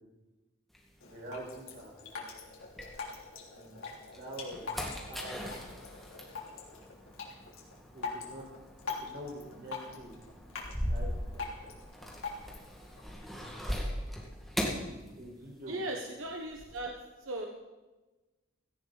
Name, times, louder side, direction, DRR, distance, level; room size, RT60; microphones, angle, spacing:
sound 1, 0.7-3.5 4.0-15.7 16.0-16.8, equal, ahead, 2.0 m, -40 dB
Drip, 1.0-13.0, left 4 dB, 90° left, 3.4 m, -44 dB
voice 1, 1.0-2.3 3.5-3.8 4.1-4.7 4.9-5.5 7.9-8.5 9.0-10.1 10.9-11.7 15.2-15.9, right 1 dB, 45° right, -2 dB, 5.1 m, -45 dB
voice 2, 15.6-16.9 17.2-17.5, right 1 dB, 80° right, 1 dB, 1.4 m, -37 dB
17.0 x 15.5 x 4.2 m, 1.2 s
head